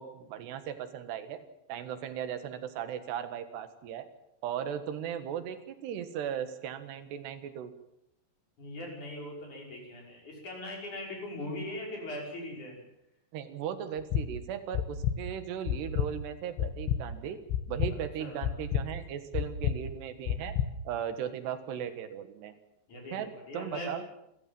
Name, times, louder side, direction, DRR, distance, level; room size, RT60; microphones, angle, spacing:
voice 1, 0.0-1.4 1.7-4.1 4.4-7.7 13.3-17.4 17.7-20.6 20.9-22.5 23.1-24.0, right 9 dB, 70° right, 10 dB, 3.4 m, -37 dB
voice 2, 8.6-12.8 18.2-18.5 22.9-23.2 23.5-23.9, left 1 dB, 40° left, 0 dB, 7.1 m, -40 dB
sound 1, 14.0-14.2 14.7-15.2 15.7-16.1 16.6-17.0 17.5-17.9 18.4-18.8 19.3-19.8 20.3-20.7, left 10 dB, 85° left, 3.7 m, -28 dB
28.0 x 14.5 x 7.6 m, 0.82 s
omnidirectional pair, 5.3 m